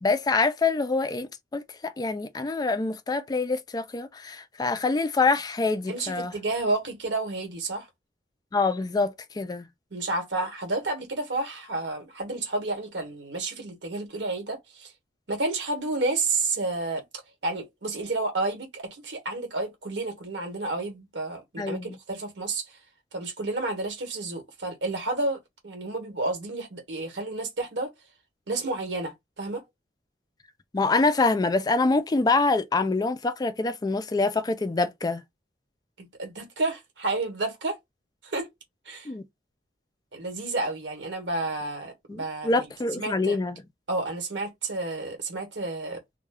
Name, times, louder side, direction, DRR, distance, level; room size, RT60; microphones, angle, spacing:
voice 1, 0.0-6.3 8.5-9.6 21.6-22.0 30.7-35.2 39.1-39.2 42.1-43.6, left 3 dB, 20° left, 0.3 m, -25 dB
voice 2, 5.9-7.9 9.9-14.9 15.3-17.0 17.4-22.8 23.1-27.9 28.5-29.6 36.0-37.8 38.2-38.5 38.8-39.1 40.1-42.7 42.9-43.4 43.9-46.0, right 2 dB, 85° right, 1.1 m, -30 dB
2.2 x 2.1 x 3.3 m
head